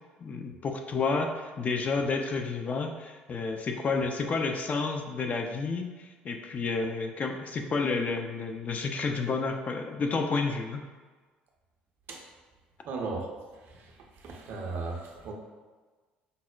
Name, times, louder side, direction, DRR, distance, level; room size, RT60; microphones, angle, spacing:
voice 1, 0.2-10.9, left 4 dB, 30° left, 4 dB, 0.3 m, -30 dB
voice 2, 12.8-13.3 13.7-13.9 14.2-15.3, right 3 dB, 50° right, 1 dB, 0.5 m, -36 dB
5.2 x 2.0 x 2.3 m, 1.4 s
figure-of-eight pair, 55°, 5 cm